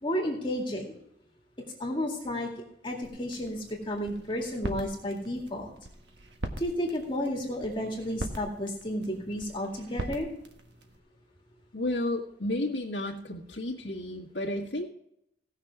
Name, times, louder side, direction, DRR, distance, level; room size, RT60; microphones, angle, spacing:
voice 1, 0.0-0.9 1.8-2.5 2.8-5.7 6.6-10.3, equal, 30° left, 0 dB, 2.1 m, -32 dB
sound 1, 3.0-11.0, right 1 dB, 70° right, 1.5 m, -42 dB
voice 2, 11.7-14.8, left 1 dB, 75° left, -2 dB, 1.7 m, -32 dB
17.5 x 6.6 x 4.7 m, 0.75 s
head